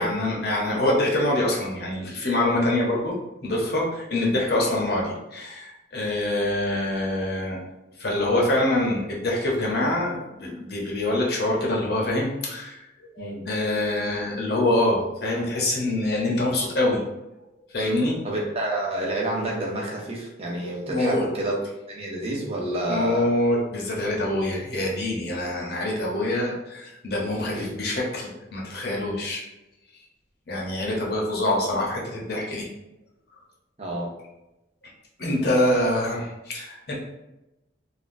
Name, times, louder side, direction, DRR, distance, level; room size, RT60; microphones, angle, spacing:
voice 1, 0.0-3.2 3.4-7.6 8.0-12.9 13.2-17.0 17.7-18.2 20.9-21.2 22.9-29.4 30.5-32.7 35.2-36.9, left 1 dB, 55° left, -3 dB, 0.7 m, -25 dB
voice 2, 18.2-21.6 21.9-23.3 27.5-27.7 33.8-34.1, right 1 dB, 30° right, -3 dB, 0.7 m, -29 dB
3.5 x 2.2 x 2.5 m, 0.96 s
head